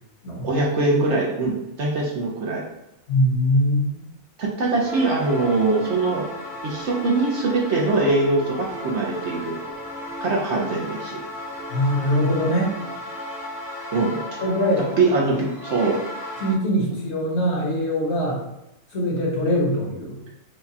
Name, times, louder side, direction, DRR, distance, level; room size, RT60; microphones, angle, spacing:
voice 1, 0.4-2.6 4.4-6.3 6.6-9.5 10.2-11.2 13.9-14.2 15.0-16.0, right 3 dB, 60° right, -2 dB, 0.9 m, -22 dB
voice 2, 3.1-4.1 11.7-12.8 14.4-14.9 16.4-18.4 18.9-20.2, equal, 55° left, -3 dB, 1.1 m, -22 dB
sound 1, 4.7-16.5, equal, 5° right, 0.4 m, -35 dB
4.7 x 2.3 x 2.7 m, 0.87 s
omnidirectional pair, 1.5 m